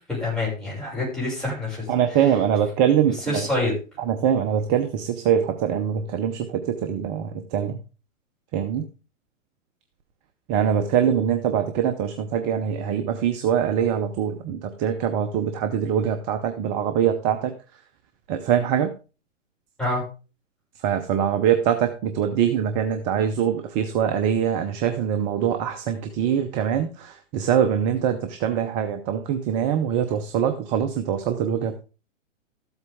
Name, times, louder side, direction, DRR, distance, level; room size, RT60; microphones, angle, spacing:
voice 1, 0.1-1.9 3.1-3.8 19.8-20.0, left 2 dB, ahead, -6 dB, 6.0 m, -26 dB
voice 2, 1.9-3.5 4.1-7.8 8.5-8.8 10.5-17.5 18.3-18.9 20.8-31.8, right 8 dB, 20° right, 7 dB, 0.6 m, -23 dB
13.5 x 7.9 x 3.6 m, 0.34 s
hypercardioid pair, 140°, 39 cm